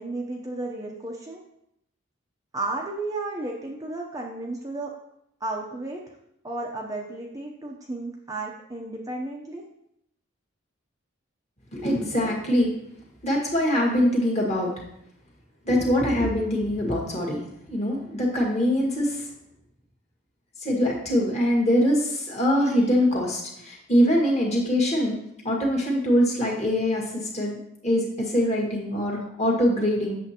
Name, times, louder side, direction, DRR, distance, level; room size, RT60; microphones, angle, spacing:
voice 1, 0.0-1.4 2.5-4.9 5.4-6.0 6.4-9.6, right 2 dB, 15° right, -1 dB, 0.6 m, -33 dB
voice 2, 11.7-12.7 13.2-14.7 15.6-17.4 17.7-19.3 20.6-25.2 25.4-30.2, equal, 30° left, -2 dB, 1.7 m, -23 dB
8.2 x 6.9 x 2.9 m, 0.76 s
head